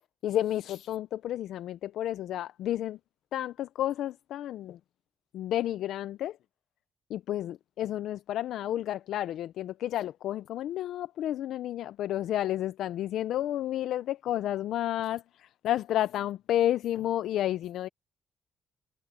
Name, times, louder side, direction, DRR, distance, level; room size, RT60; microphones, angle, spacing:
voice 1, 0.2-3.0 3.3-4.8 5.3-6.4 7.1-17.9, left 12 dB, 80° left, 0.5 m, -31 dB
cardioid pair, 90°, 0 cm